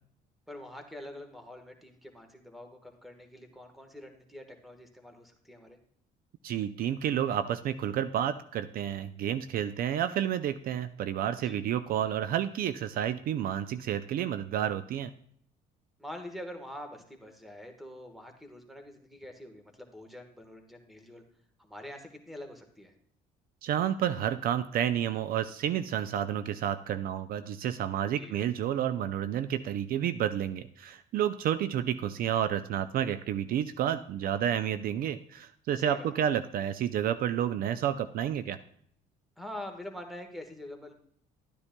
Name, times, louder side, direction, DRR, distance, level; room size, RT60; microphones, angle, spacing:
voice 1, 0.5-5.8 11.4-11.6 16.0-21.2 21.6-22.9 28.2-28.4 35.8-36.1 39.4-40.9, left 1 dB, ahead, 4 dB, 1.2 m, -45 dB
voice 2, 6.4-15.1 23.6-38.6, right 10 dB, 60° right, 12 dB, 0.4 m, -30 dB
12.0 x 9.7 x 2.2 m, 0.64 s
cardioid pair, 110°, 17 cm